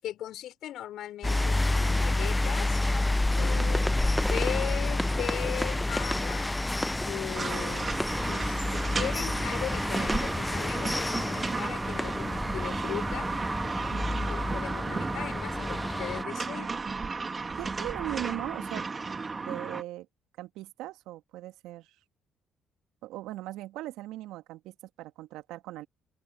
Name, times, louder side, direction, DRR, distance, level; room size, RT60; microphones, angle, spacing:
voice 1, 0.0-2.8 3.3-6.5 7.0-7.9 8.2-13.3 14.3-16.8, left 12 dB, 70° left, 6.5 m, -38 dB
sound 1, 1.2-16.2, left 2 dB, 15° left, 0.9 m, -29 dB
sound 2, 3.4-12.5, equal, ahead, 1.4 m, -38 dB
voice 2, 3.4-3.7 13.9-14.3 17.6-18.9 19.4-20.1 20.4-22.0 23.0-25.9, right 16 dB, 75° right, 2.5 m, -39 dB
sound 3, 7.3-19.8, right 4 dB, 35° right, 3.1 m, -34 dB
open air
hypercardioid pair, 50°, 0 cm